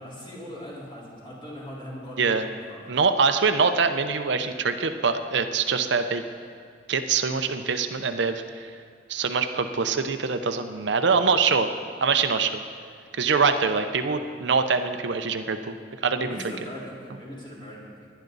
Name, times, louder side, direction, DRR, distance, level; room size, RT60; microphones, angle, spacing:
voice 1, 0.0-2.8 16.2-18.1, equal, 25° left, -6 dB, 3.8 m, -40 dB
voice 2, 2.9-6.2 6.9-8.7 9.1-11.7 12.0-12.6 13.2-15.7 16.0-16.4, right 5 dB, 65° right, 8 dB, 0.6 m, -24 dB
20.0 x 10.5 x 4.0 m, 2.3 s
head